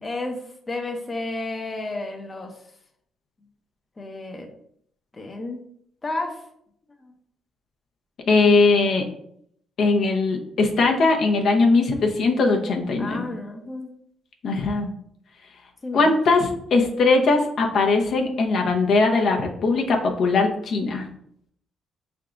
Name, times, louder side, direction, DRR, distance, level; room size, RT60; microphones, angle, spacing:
voice 1, 0.0-2.6 4.0-4.5 5.1-5.6 6.0-6.4 7.0-7.1 13.0-13.9 15.8-16.1, left 2 dB, 25° left, 3 dB, 0.7 m, -32 dB
voice 2, 8.3-9.0 9.8-13.3 14.4-14.9 15.9-21.1, left 3 dB, 65° left, 2 dB, 0.8 m, -20 dB
5.7 x 3.5 x 2.5 m, 0.69 s
cardioid pair, 90°, 0 cm